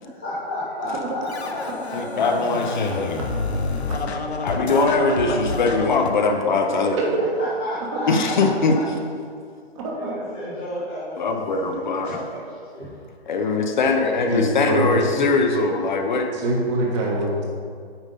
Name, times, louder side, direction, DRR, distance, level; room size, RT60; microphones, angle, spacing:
voice 1, 0.0-2.9 4.8-5.0 7.6-8.7 9.9-13.4, left 1 dB, 5° left, -12 dB, 0.3 m, -33 dB
Scratching (performance technique), 1.3-6.1, left 3 dB, 85° left, 0.9 m, -28 dB
voice 2, 1.9-3.2 3.9-4.0 4.4-7.0 8.1-8.8 11.2-12.2 13.3-16.3, left 3 dB, 45° left, 4 dB, 0.8 m, -21 dB
voice 3, 9.7-10.1 14.3-15.2 16.3-17.4, right 1 dB, 30° right, -2 dB, 1.4 m, -24 dB
8.9 x 3.6 x 5.4 m, 2.2 s
hypercardioid pair, 150°, 32 cm